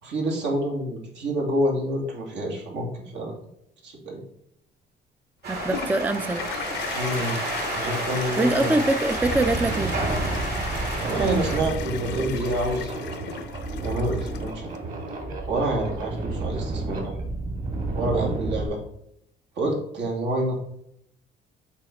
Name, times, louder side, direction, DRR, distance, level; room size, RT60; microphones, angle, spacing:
voice 1, 0.0-3.3 3.8-4.2 6.9-7.3 7.7-8.8 11.0-13.1 13.8-14.7 15.5-17.1 18.0-18.8 19.6-20.7, right 1 dB, 75° right, 0 dB, 2.5 m, -27 dB
sound 1, 5.4-11.6, right 2 dB, 60° right, 2.8 m, -30 dB
voice 2, 5.5-6.4 8.4-9.9, right 2 dB, 10° right, 11 dB, 0.4 m, -23 dB
Toilet flush, 5.6-14.8, left 10 dB, 75° left, 0.7 m, -37 dB
sound 2, 8.9-18.7, right 2 dB, 45° right, 2.4 m, -31 dB
7.3 x 5.0 x 3.8 m, 0.76 s
cardioid pair, 125°, 19 cm